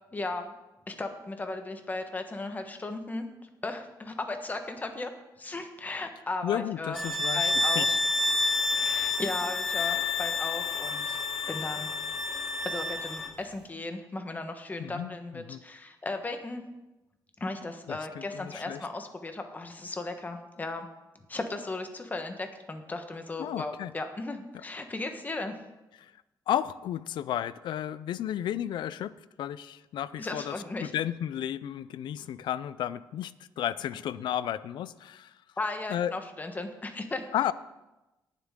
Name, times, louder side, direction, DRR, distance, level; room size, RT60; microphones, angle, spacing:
voice 1, 0.1-0.6 0.9-3.3 3.6-5.1 5.4-7.0 7.3-7.9 8.7-11.2 11.5-12.3 12.6-16.6 17.4-20.9 21.3-25.6 30.2-30.9 35.6-37.2, left 2 dB, 20° left, 6 dB, 1.3 m, -36 dB
voice 2, 6.4-8.0 8.6-8.8 14.8-15.6 17.9-18.8 23.4-23.9 26.0-26.1 26.5-35.3 35.9-36.1 37.3-37.5, left 11 dB, 80° left, 17 dB, 0.5 m, -33 dB
sound 1, 6.9-13.3, left 3 dB, ahead, 1.3 m, -29 dB
18.0 x 7.4 x 3.7 m, 1.0 s
cardioid pair, 125°, 8 cm